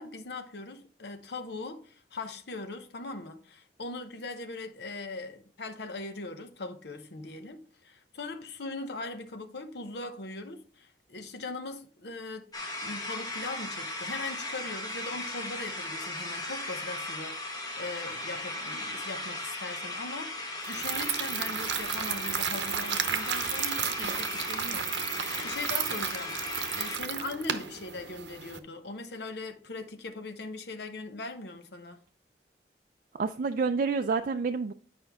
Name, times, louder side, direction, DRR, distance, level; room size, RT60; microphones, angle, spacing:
voice 1, 0.0-12.5 12.8-25.2 25.4-26.4 26.8-32.0, left 3 dB, 70° left, 0.9 m, -40 dB
sound 1, 12.5-27.0, left 1 dB, 20° left, 1.4 m, -37 dB
sound 2, 20.6-28.6, right 8 dB, 85° right, 0.8 m, -33 dB
voice 2, 33.1-34.7, right 4 dB, 50° right, 0.4 m, -28 dB
9.0 x 5.2 x 3.5 m
head